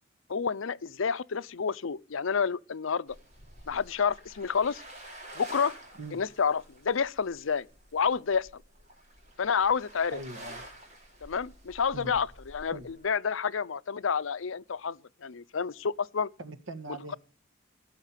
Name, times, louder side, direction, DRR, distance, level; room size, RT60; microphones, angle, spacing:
voice 1, 0.3-3.2 3.7-4.8 5.4-5.7 6.1-7.7 7.9-8.6 9.4-10.2 11.2-16.3, left 6 dB, 85° left, 0.6 m, -29 dB
sound 1, 3.1-13.1, right 1 dB, 35° right, 4.3 m, -49 dB
voice 2, 10.1-10.6 11.9-12.2 12.7-12.9 16.4-17.2, right 2 dB, 80° right, 1.8 m, -41 dB
17.0 x 6.6 x 9.0 m
head